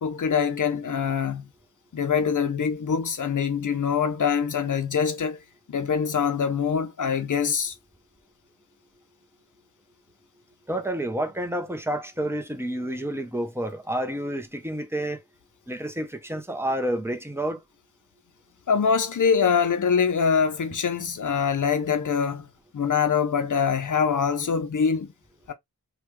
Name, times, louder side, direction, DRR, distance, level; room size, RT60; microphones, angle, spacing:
voice 1, 0.0-1.4 1.9-5.4 5.7-7.7 18.7-22.5 22.7-25.1 25.5-25.6, left 6 dB, 60° left, 0.6 m, -24 dB
voice 2, 10.7-15.2 15.7-17.6, right 1 dB, 5° right, 0.7 m, -29 dB
3.3 x 2.3 x 3.1 m
wide cardioid pair, 60°, 35 cm